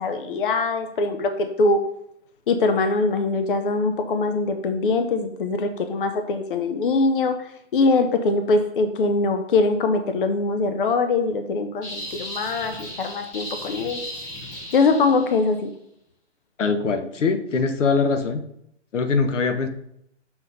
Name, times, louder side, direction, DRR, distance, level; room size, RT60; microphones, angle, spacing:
voice 1, 0.0-1.8 2.5-14.0 14.7-15.7, left 3 dB, 45° left, 7 dB, 0.7 m, -22 dB
sound 1, 11.8-15.5, equal, 15° left, 0.9 m, -36 dB
voice 2, 16.6-18.4 18.9-19.7, left 4 dB, 75° left, 9 dB, 1.1 m, -22 dB
6.9 x 5.9 x 4.0 m, 0.75 s
hypercardioid pair, 160°, 37 cm